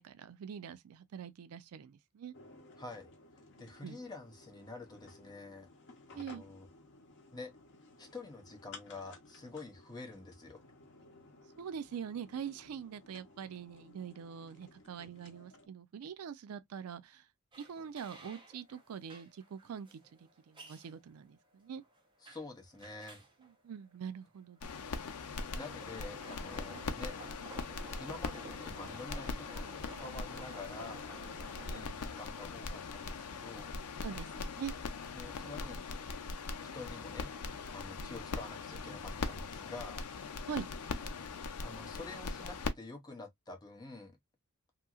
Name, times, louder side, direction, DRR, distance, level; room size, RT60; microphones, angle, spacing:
voice 1, 0.0-2.3 3.8-4.0 6.1-6.4 11.6-17.2 17.6-20.0 20.5-21.8 23.6-24.7 26.6-27.0 31.6-32.1 34.0-34.7 38.0-38.1 40.4-40.7, right 7 dB, 70° right, 0.4 m, -44 dB
sound 1, 2.3-15.7, left 3 dB, 55° left, 0.8 m, -57 dB
voice 2, 2.8-3.1 3.6-5.7 6.1-6.7 7.3-7.5 8.0-10.6 22.2-23.2 25.5-27.2 28.0-31.0 31.6-33.7 35.1-35.8 36.7-37.3 37.7-40.0 41.1-44.2, left 3 dB, 20° left, 0.7 m, -48 dB
sound 2, 17.5-31.8, right 2 dB, 20° right, 0.8 m, -54 dB
sound 3, 24.6-42.7, left 4 dB, 90° left, 0.5 m, -41 dB
2.9 x 2.7 x 2.3 m
head